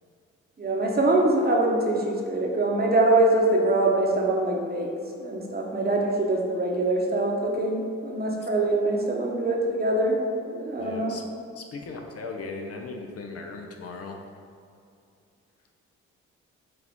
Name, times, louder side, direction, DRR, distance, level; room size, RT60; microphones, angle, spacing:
voice 1, 0.6-4.9 5.2-10.2 10.5-11.1, right 2 dB, 30° right, -1 dB, 0.9 m, -24 dB
voice 2, 10.8-11.2 11.5-14.2, left 3 dB, 50° left, 3 dB, 0.6 m, -38 dB
6.0 x 2.4 x 3.6 m, 2.5 s
hypercardioid pair, 50°, 31 cm